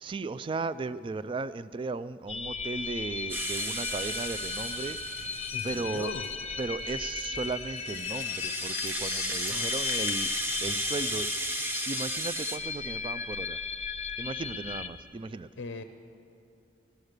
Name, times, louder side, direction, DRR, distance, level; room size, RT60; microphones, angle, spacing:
voice 1, 0.0-5.0 5.6-6.1 6.6-10.3 10.6-11.3 11.9-13.6 14.2-15.5, right 3 dB, 30° right, 15 dB, 0.3 m, -36 dB
sound 1, 2.3-14.9, left 6 dB, 35° left, 0.7 m, -36 dB
Rattle (instrument), 3.3-6.3 6.9-12.6, right 1 dB, 10° right, 0.9 m, -34 dB
voice 2, 5.5-6.3 9.5-9.7 15.6-15.8, left 3 dB, 85° left, 8 dB, 0.6 m, -38 dB
16.5 x 12.5 x 6.6 m, 2.6 s
head